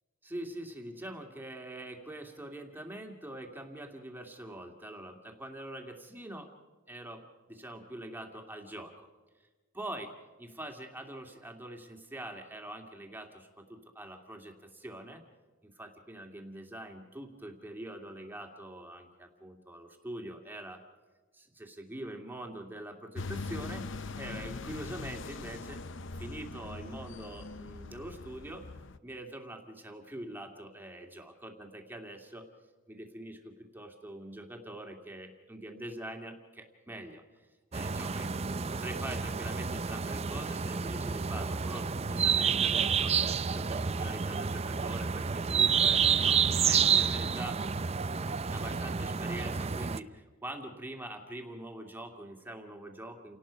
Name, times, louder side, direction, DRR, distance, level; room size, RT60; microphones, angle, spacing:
voice 1, 0.2-6.5 6.9-9.1 9.7-10.1 10.4-15.2 15.6-20.8 21.3-23.8 24.1-25.8 26.2-28.6 29.0-32.5 32.9-37.5 37.7-43.2 43.5-47.6 48.5-53.4, right 1 dB, 10° right, 3 dB, 2.2 m, -44 dB
sound 1, 23.2-29.0, left 3 dB, 60° left, 0.7 m, -41 dB
sound 2, 37.7-50.0, right 6 dB, 30° right, 0.5 m, -29 dB
29.5 x 18.5 x 5.1 m, 1.3 s
head